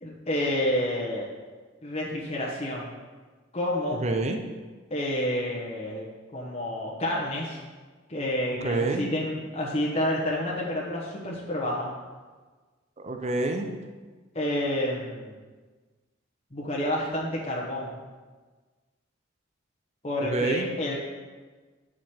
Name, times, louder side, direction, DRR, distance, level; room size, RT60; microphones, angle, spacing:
voice 1, 0.0-1.3 1.8-2.9 3.5-4.0 4.9-6.1 6.3-7.6 8.1-11.9 14.3-15.3 16.5-18.0 20.0-21.0, left 1 dB, 35° left, -4 dB, 1.2 m, -29 dB
voice 2, 4.0-4.4 8.6-9.1 13.0-13.7 20.2-20.7, right 2 dB, 35° right, 5 dB, 0.6 m, -27 dB
9.2 x 5.0 x 4.5 m, 1.4 s
head